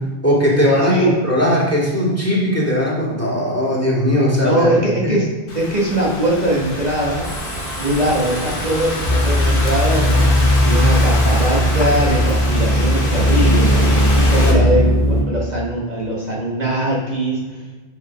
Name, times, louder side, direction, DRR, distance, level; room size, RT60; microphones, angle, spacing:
voice 1, 0.0-4.7 5.0-5.2 14.4-14.7, equal, 15° left, -6 dB, 2.6 m, -18 dB
voice 2, 0.8-1.1 4.4-5.3 5.5-7.3 7.8-13.7 14.3-14.9 15.3-17.6, right 1 dB, 40° right, -5 dB, 1.7 m, -21 dB
Thunderstorm / Rain, 5.5-14.5, left 1 dB, 60° left, 1.8 m, -25 dB
sound 1, 7.2-14.0, right 3 dB, 60° right, 2.0 m, -37 dB
sound 2, 9.0-15.2, equal, 80° left, 2.1 m, -16 dB
7.5 x 5.5 x 6.1 m, 1.3 s
omnidirectional pair, 1.1 m